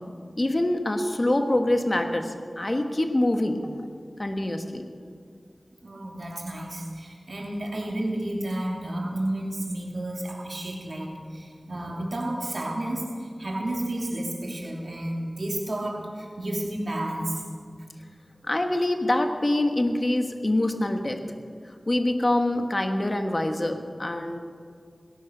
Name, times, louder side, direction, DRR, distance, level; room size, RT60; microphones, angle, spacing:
voice 1, 0.4-3.6 4.2-4.8 18.5-21.2 21.9-24.4, left 1 dB, 35° left, 5 dB, 1.4 m, -25 dB
voice 2, 5.8-17.4, right 1 dB, 65° right, -1 dB, 2.8 m, -31 dB
18.5 x 11.0 x 6.7 m, 2.1 s
wide cardioid pair, 70°, 0 cm